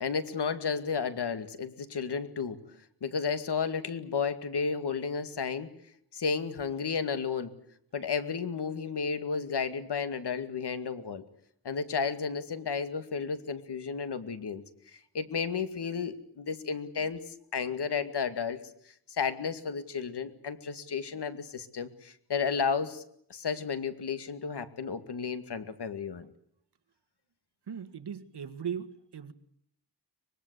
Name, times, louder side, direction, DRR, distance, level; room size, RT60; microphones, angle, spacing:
voice 1, 0.0-2.6 3.0-5.7 6.1-7.5 7.9-11.2 11.6-14.6 15.1-18.6 19.1-23.0 23.3-26.3, left 5 dB, 80° left, 9 dB, 2.3 m, -32 dB
voice 2, 27.7-29.3, right 8 dB, 90° right, 10 dB, 1.9 m, -38 dB
24.5 x 22.0 x 8.3 m, 0.69 s
wide cardioid pair, 165°, 40 cm